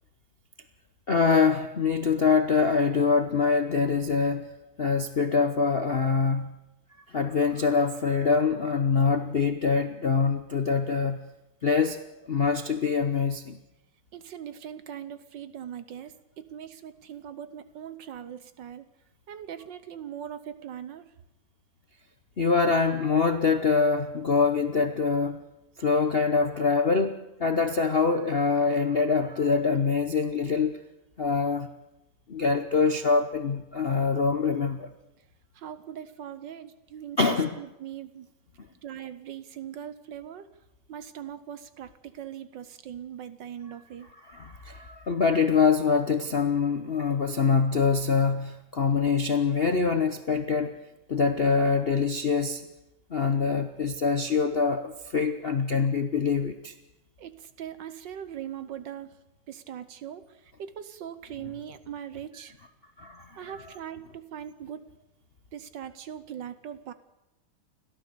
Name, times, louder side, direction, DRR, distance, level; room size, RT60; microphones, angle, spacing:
voice 1, 1.1-4.5 4.8-6.5 7.1-11.2 11.6-12.0 12.3-13.6 22.4-25.4 25.8-30.8 31.2-31.7 32.3-34.9 37.2-37.5 44.3-50.7 51.1-52.6 53.1-56.7 63.0-63.5, left 5 dB, 50° left, 7 dB, 0.7 m, -24 dB
voice 2, 14.1-18.8 19.3-21.0 35.5-37.2 37.6-38.3 38.8-40.5 40.9-44.1 57.2-59.2 59.5-62.5 63.4-64.8 65.5-66.9, right 9 dB, 65° right, 12 dB, 1.5 m, -40 dB
30.0 x 13.0 x 6.9 m, 0.91 s
omnidirectional pair, 2.3 m